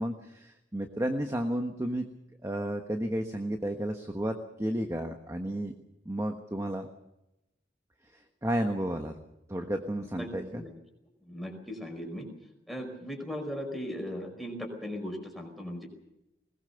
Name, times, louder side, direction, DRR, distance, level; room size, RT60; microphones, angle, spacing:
voice 1, 0.0-2.1 2.4-5.7 6.0-6.9 8.1-9.1 9.5-10.6, right 1 dB, 15° right, 5 dB, 1.3 m, -32 dB
voice 2, 10.2-10.7 11.3-12.3 12.7-15.9, equal, ahead, 3 dB, 5.0 m, -38 dB
21.0 x 19.5 x 6.9 m, 0.89 s
head